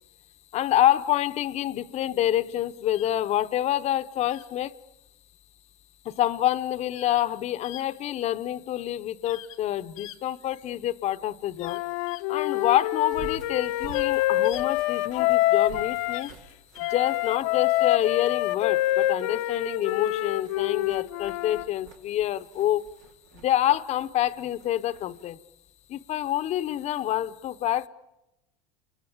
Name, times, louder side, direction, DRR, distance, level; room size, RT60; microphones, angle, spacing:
voice 1, 0.5-4.7 6.0-11.8 12.3-16.3 16.8-22.8 23.4-25.4 25.9-27.9, left 12 dB, 40° left, 0.9 m, -27 dB
sound 1, 2.9-3.1 4.2-4.5 6.9-7.2 7.6-7.8 9.2-9.6 9.9-10.8 11.6-12.2 13.6-14.1 14.4-14.6 16.1-16.4 16.7-17.0, left 15 dB, 90° left, 1.4 m, -44 dB
Wind instrument woodwind instrument, 11.6-16.2 16.8-21.7, left 15 dB, 70° left, 0.9 m, -26 dB
sound 2, 13.0-17.7 18.1-18.4 18.9-19.4 19.9-25.3, right 5 dB, 80° right, 3.0 m, -49 dB
30.0 x 24.0 x 7.2 m
supercardioid pair, 120°, 17 cm